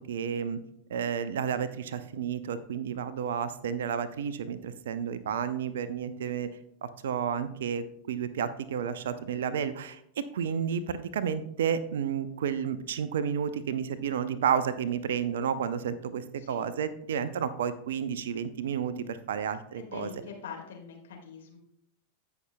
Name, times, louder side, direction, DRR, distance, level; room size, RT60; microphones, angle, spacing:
voice 1, 0.1-0.6 0.9-6.5 6.8-20.1, right 7 dB, 60° right, 14 dB, 0.5 m, -31 dB
voice 2, 19.7-21.6, left 6 dB, 60° left, 1 dB, 1.9 m, -43 dB
16.0 x 5.8 x 2.2 m, 0.73 s
figure-of-eight pair, 90°, 0 cm